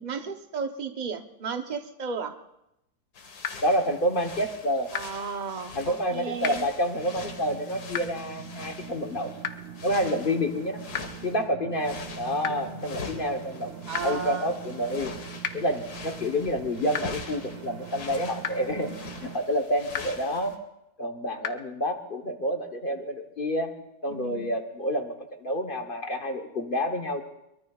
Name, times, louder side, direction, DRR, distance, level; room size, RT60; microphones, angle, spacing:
voice 1, 0.0-2.4 4.9-6.7 10.0-10.3 12.4-13.0 13.9-14.6 18.7-19.0 24.1-24.5, right 5 dB, 35° right, 7 dB, 0.8 m, -34 dB
sound 1, 3.1-11.4 11.8-20.6, left 4 dB, 90° left, 2.0 m, -43 dB
sound 2, 3.4-3.5 4.9-5.0 6.4-6.5 7.9-8.0 9.4-9.5 10.9-11.0 12.4-12.5 13.9-14.0 15.4-15.5 16.9-17.0 18.4-18.5 19.9-20.0 21.4-21.5, left 8 dB, 55° left, 0.8 m, -29 dB
voice 2, 3.6-4.9 5.7-9.3 9.8-10.8 11.2-13.7 14.0-15.2 15.5-18.9 19.2-20.5 21.0-23.7 24.0-25.1 25.4-27.2, equal, 40° left, 5 dB, 1.1 m, -28 dB
sound 3, 6.9-19.4, right 8 dB, 75° right, 1.4 m, -43 dB
23.0 x 22.5 x 2.4 m, 0.86 s
omnidirectional pair, 1.6 m